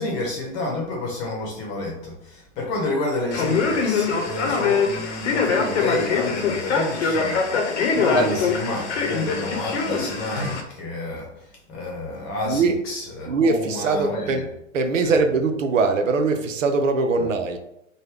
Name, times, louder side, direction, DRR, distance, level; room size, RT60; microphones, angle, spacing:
voice 1, 0.0-7.5 7.9-11.3 11.7-14.5 15.0-15.2 17.1-17.3, left 2 dB, 35° left, -1 dB, 0.9 m, -30 dB
Male speech man speaking, 3.3-10.6, left 5 dB, 65° left, 0.8 m, -23 dB
voice 2, 12.4-12.8 13.3-14.5 14.7-17.6, right 4 dB, 80° right, 6 dB, 0.6 m, -21 dB
3.2 x 2.2 x 3.4 m, 0.83 s
hypercardioid pair, 110°, 38 cm